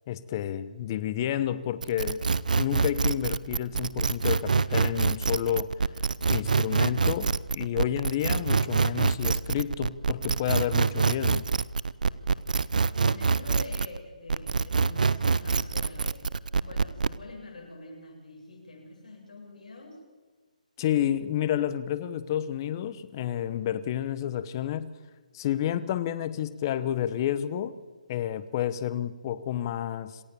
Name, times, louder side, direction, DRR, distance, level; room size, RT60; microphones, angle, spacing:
voice 1, 0.1-2.2 2.6-5.7 6.3-11.4 20.8-25.0 25.3-27.8 28.1-30.2, left 11 dB, 30° left, 14 dB, 1.1 m, -30 dB
sound 1, 1.8-14.0 14.3-17.2, right 4 dB, 75° right, 0.8 m, -25 dB
voice 2, 13.0-16.3 16.6-20.0, left 2 dB, 65° left, -1 dB, 7.9 m, -45 dB
27.5 x 15.0 x 7.0 m, 1.4 s
hypercardioid pair, 160°, 4 cm